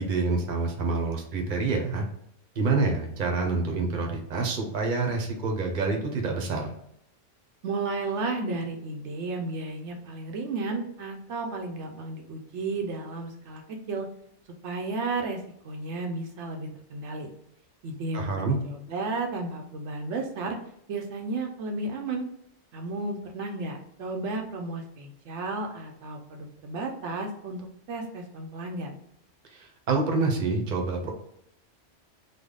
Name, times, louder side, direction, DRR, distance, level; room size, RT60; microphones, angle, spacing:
voice 1, 0.0-2.0 2.5-6.7 18.1-18.6 29.5-31.1, right 3 dB, 45° right, 2 dB, 0.8 m, -27 dB
voice 2, 7.6-14.1 14.6-15.4 15.6-17.3 17.8-18.3 18.6-20.6 20.9-22.3 22.7-28.9, right 3 dB, 75° right, 2 dB, 0.9 m, -33 dB
3.4 x 2.2 x 3.7 m, 0.74 s
omnidirectional pair, 1.2 m